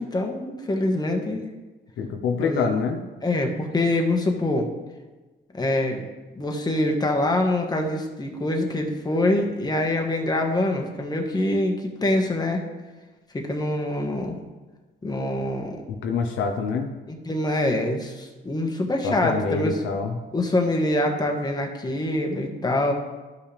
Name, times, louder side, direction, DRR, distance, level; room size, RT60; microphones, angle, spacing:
voice 1, 0.0-1.4 2.4-2.7 3.2-4.7 5.5-6.0 6.3-12.6 13.3-14.4 15.0-15.8 17.1-19.8 20.3-22.9, left 1 dB, 20° left, 2 dB, 1.4 m, -25 dB
voice 2, 2.0-3.0 16.0-16.9 19.0-20.2, left 5 dB, 85° left, 4 dB, 0.9 m, -26 dB
12.5 x 5.7 x 3.4 m, 1.2 s
cardioid pair, 90°, 20 cm